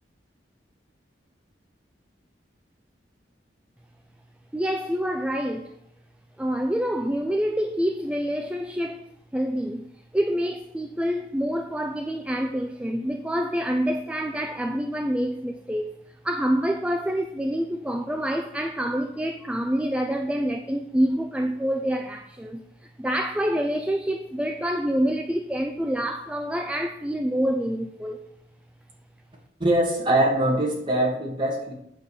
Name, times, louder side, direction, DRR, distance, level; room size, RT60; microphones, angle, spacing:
voice 1, 4.5-5.7 6.4-9.9 10.1-28.2, equal, 5° right, 5 dB, 0.4 m, -27 dB
voice 2, 29.6-31.7, right 1 dB, 25° right, -2 dB, 2.5 m, -22 dB
8.7 x 5.4 x 6.6 m, 0.75 s
head